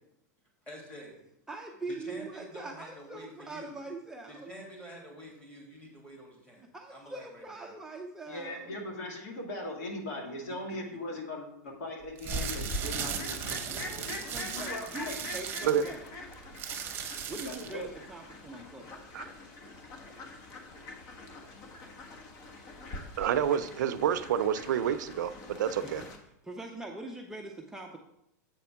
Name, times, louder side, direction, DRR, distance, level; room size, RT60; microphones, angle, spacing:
voice 1, 0.7-1.1 1.9-3.8 4.3-6.6 6.9-7.7, equal, 10° left, -3 dB, 2.4 m, -47 dB
voice 2, 1.5-4.5 6.6-8.8 13.6-16.0 17.3-19.4 25.8-26.0 26.4-28.0, right 2 dB, 5° right, 1 dB, 0.5 m, -43 dB
voice 3, 8.3-15.3 17.4-17.9, left 1 dB, 65° left, 1 dB, 2.2 m, -40 dB
sound 1, 12.1-17.8, right 7 dB, 25° right, 0.9 m, -37 dB
Fowl, 12.3-26.2, left 2 dB, 40° left, 1.3 m, -44 dB
voice 4, 23.2-26.0, right 9 dB, 80° right, 12 dB, 0.5 m, -28 dB
7.7 x 4.3 x 5.8 m, 0.80 s
supercardioid pair, 145°, 10 cm